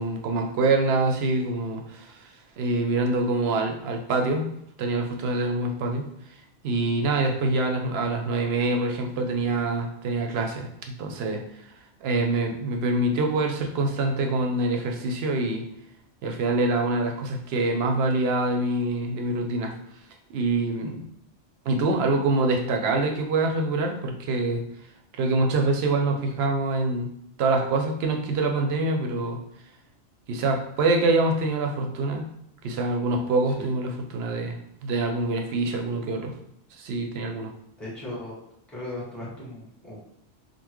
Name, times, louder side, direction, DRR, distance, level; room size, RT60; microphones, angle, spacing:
voice 1, 0.0-4.5 4.8-6.1 6.6-11.4 12.0-15.7 16.2-19.7 20.3-21.0 21.7-24.6 25.1-27.1 27.4-29.4 30.3-32.3 32.6-36.4 36.8-37.5, right 2 dB, 65° right, 3 dB, 0.7 m, -25 dB
voice 2, 37.8-38.3 38.7-40.0, left 1 dB, ahead, -8 dB, 1.2 m, -37 dB
3.7 x 2.1 x 3.0 m, 0.73 s
omnidirectional pair, 1.2 m